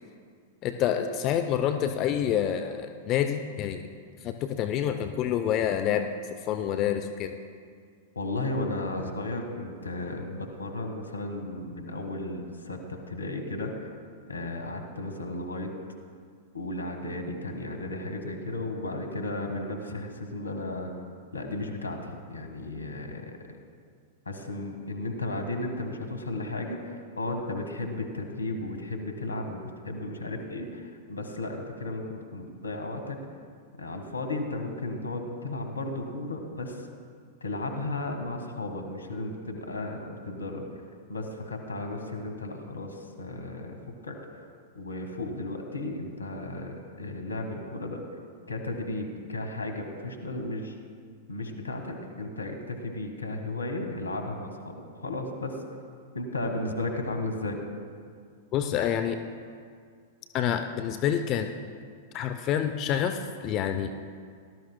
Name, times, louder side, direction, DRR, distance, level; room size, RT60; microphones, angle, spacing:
voice 1, 0.6-3.8 4.2-7.4 58.5-59.2 60.3-61.5 62.1-63.9, left 9 dB, 35° left, 7 dB, 0.6 m, -27 dB
voice 2, 8.1-13.9 14.3-15.7 16.5-20.9 21.3-23.3 24.2-33.2 33.8-36.9 37.4-40.6 41.1-43.8 44.0-44.2 44.7-48.0 48.5-50.7 51.3-55.6 56.1-57.6, left 2 dB, 85° left, 4 dB, 1.5 m, -34 dB
19.0 x 12.5 x 2.2 m, 2.1 s
figure-of-eight pair, 95°, 0 cm